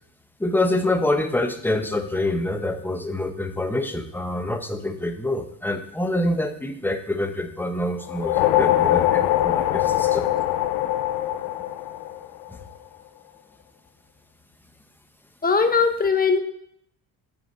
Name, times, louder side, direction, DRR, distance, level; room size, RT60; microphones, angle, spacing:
voice 1, 0.4-10.3, left 1 dB, 5° left, 6 dB, 1.0 m, -26 dB
sound 1, 8.0-12.6, left 13 dB, 85° left, 0.6 m, -22 dB
voice 2, 15.4-16.4, left 5 dB, 25° left, 6 dB, 1.2 m, -19 dB
8.0 x 4.7 x 6.7 m, 0.68 s
cardioid pair, 95°, 38 cm